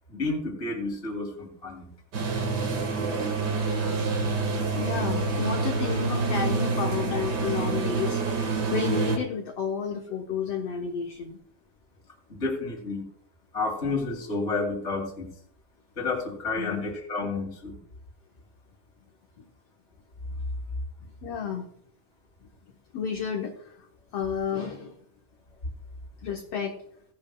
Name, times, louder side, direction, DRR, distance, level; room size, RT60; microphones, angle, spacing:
voice 1, 0.1-1.9 2.3-2.5 12.3-13.1 13.5-15.3 16.0-17.8, left 3 dB, 25° left, 1 dB, 2.5 m, -30 dB
sound 1, 2.1-9.2, right 4 dB, 45° right, 1.5 m, -27 dB
voice 2, 4.6-11.4 16.6-16.9 21.2-21.7 22.9-23.8 24.1-24.9 26.2-26.8, left 7 dB, 65° left, 2 dB, 1.7 m, -31 dB
17.0 x 10.5 x 2.2 m, 0.71 s
omnidirectional pair, 3.6 m